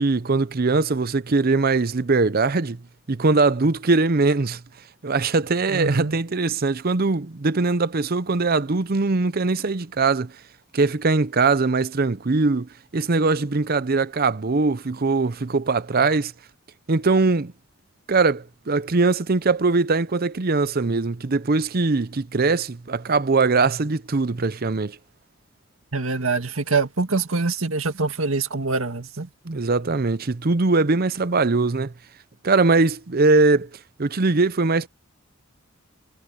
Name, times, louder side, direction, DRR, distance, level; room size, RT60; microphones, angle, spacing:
voice 1, 0.0-2.8 3.1-4.6 5.0-10.3 10.7-16.3 16.9-17.5 18.1-25.0 29.4-31.9 32.4-33.7 34.0-34.9, right 3 dB, 45° right, 0.7 m, -21 dB
voice 2, 5.7-6.2 25.9-29.3, right 3 dB, 75° right, 1.9 m, -24 dB
head